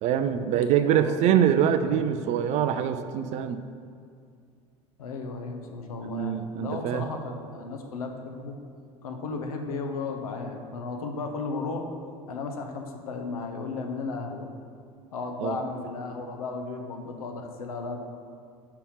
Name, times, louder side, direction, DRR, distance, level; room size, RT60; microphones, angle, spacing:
voice 1, 0.0-3.6 6.0-7.1 15.4-15.6, right 9 dB, 35° right, 10 dB, 0.4 m, -24 dB
voice 2, 0.8-1.5 1.8-2.3 5.0-8.6 9.0-11.9 12.3-14.5 15.1-18.0, left 4 dB, 70° left, 4 dB, 0.7 m, -35 dB
5.5 x 4.5 x 5.6 m, 2.3 s
figure-of-eight pair, 70°, 19 cm